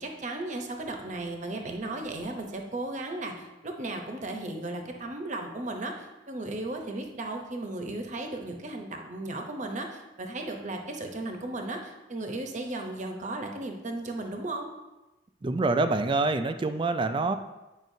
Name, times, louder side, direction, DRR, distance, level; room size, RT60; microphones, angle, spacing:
voice 1, 0.0-14.7, right 2 dB, 45° right, 3 dB, 0.8 m, -35 dB
voice 2, 15.4-17.4, right 3 dB, 30° right, 9 dB, 0.4 m, -26 dB
9.1 x 5.3 x 2.7 m, 1.0 s
head